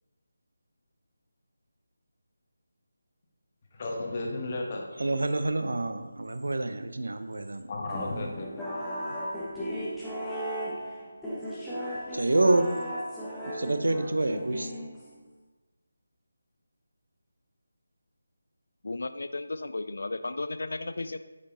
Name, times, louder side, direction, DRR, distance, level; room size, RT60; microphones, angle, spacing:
voice 1, 3.7-4.9 7.7-8.7, left 2 dB, 35° left, 0 dB, 1.1 m, -34 dB
voice 2, 5.0-7.6 12.1-12.7 13.5-14.7, right 2 dB, 65° right, 8 dB, 0.6 m, -27 dB
sound 1, 7.9-15.3, equal, 5° left, 0.9 m, -36 dB
voice 3, 18.8-21.2, left 2 dB, 60° left, 11 dB, 0.4 m, -34 dB
8.2 x 5.1 x 2.8 m, 1.2 s
figure-of-eight pair, 155°, 0 cm